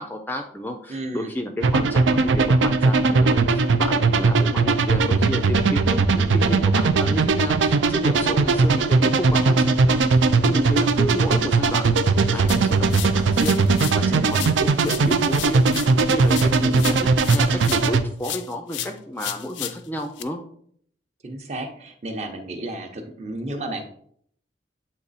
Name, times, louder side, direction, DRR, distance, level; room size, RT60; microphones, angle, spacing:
voice 1, 0.0-20.4, equal, 10° left, 4 dB, 0.4 m, -32 dB
voice 2, 0.9-1.3 14.1-14.3 21.2-23.8, right 1 dB, 35° right, 4 dB, 0.8 m, -32 dB
sound 1, 1.6-18.0, right 3 dB, 90° right, 0.5 m, -19 dB
sound 2, 12.5-14.0 14.3-17.9 18.2-20.2, left 11 dB, 85° left, 0.4 m, -34 dB
8.4 x 3.1 x 4.1 m, 0.63 s
head